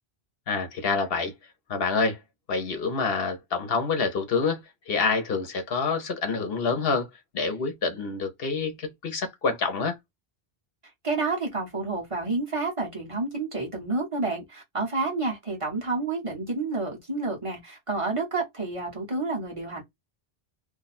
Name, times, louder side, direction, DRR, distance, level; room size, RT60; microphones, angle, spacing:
voice 1, 0.5-1.3 1.7-2.2 2.5-7.1 7.3-9.9, left 4 dB, 65° left, 1.0 m, -27 dB
voice 2, 11.0-19.8, right 3 dB, 30° right, 1.1 m, -29 dB
2.6 x 2.2 x 4.0 m
omnidirectional pair, 1.1 m